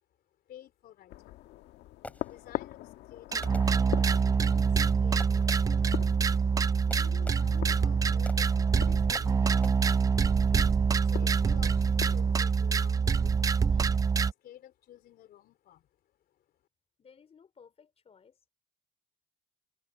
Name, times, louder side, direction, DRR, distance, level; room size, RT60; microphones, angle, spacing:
voice 1, 0.3-1.6 2.0-16.4, left 12 dB, 65° left, 4.0 m, -54 dB
sound 1, 1.1-12.3, left 15 dB, 85° left, 1.7 m, -43 dB
Fireworks, 1.5-2.7 3.4-4.3 5.2-5.9 6.9-7.8 8.3-8.7 9.1-9.7, left 1 dB, 10° left, 3.3 m, -47 dB
sound 2, 3.3-14.3, right 6 dB, 20° right, 0.3 m, -25 dB
voice 2, 17.0-18.5, left 6 dB, 35° left, 4.4 m, -58 dB
cardioid pair, 110°, 17 cm